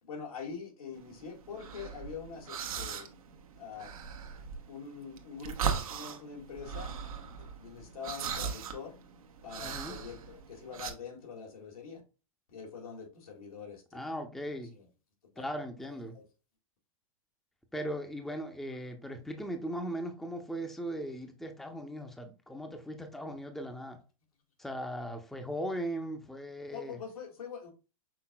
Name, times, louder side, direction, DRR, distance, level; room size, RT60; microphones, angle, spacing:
voice 1, 0.0-3.1 3.6-3.9 4.7-6.9 7.6-8.9 9.4-12.0 12.5-14.1 14.7-14.9 15.4-15.5 15.8-16.2 18.8-18.9 26.7-27.7, left 6 dB, 85° left, 2.1 m, -44 dB
sound 1, 0.9-10.9, right 7 dB, 80° right, 0.9 m, -39 dB
voice 2, 9.6-9.9 13.9-14.7 15.4-16.2 17.7-24.0 24.6-27.0, equal, ahead, 0.6 m, -38 dB
5.9 x 3.6 x 2.2 m
hypercardioid pair, 120°, 18 cm